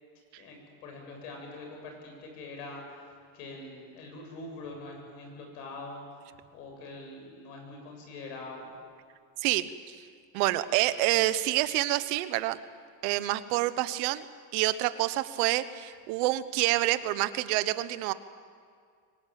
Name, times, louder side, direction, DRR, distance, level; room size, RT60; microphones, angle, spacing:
voice 1, 0.3-8.8, left 2 dB, 90° left, 2 dB, 7.6 m, -44 dB
voice 2, 9.4-9.9 10.3-12.6 13.0-14.2 14.5-18.1, right 16 dB, 75° right, 13 dB, 1.2 m, -27 dB
23.5 x 19.5 x 9.0 m, 2.1 s
cardioid pair, 145°, 45 cm